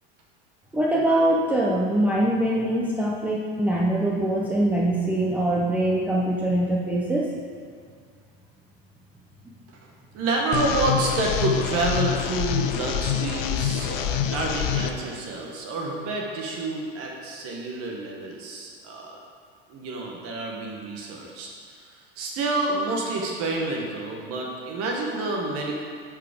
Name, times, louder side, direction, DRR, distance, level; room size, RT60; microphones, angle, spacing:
voice 1, 0.7-7.3, right 1 dB, 5° right, -4 dB, 0.4 m, -23 dB
voice 2, 10.1-19.2 19.7-21.5 22.2-25.8, right 2 dB, 50° right, -1 dB, 1.3 m, -28 dB
sound 1, 10.5-14.9, left 9 dB, 45° left, 0.5 m, -26 dB
8.3 x 4.9 x 5.1 m, 2.1 s
supercardioid pair, 145°, 31 cm